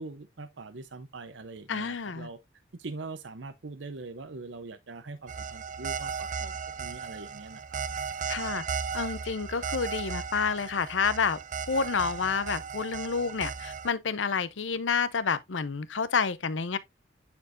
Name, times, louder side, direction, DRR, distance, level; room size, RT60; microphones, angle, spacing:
voice 1, 0.0-2.4 2.7-7.8, right 3 dB, 75° right, 0.7 m, -42 dB
voice 2, 1.7-2.3 8.3-8.6 8.9-11.4 11.7-16.8, left 5 dB, 85° left, 0.7 m, -29 dB
sound 1, 5.3-13.9, right 6 dB, 45° right, 0.5 m, -36 dB
9.5 x 4.5 x 2.5 m
head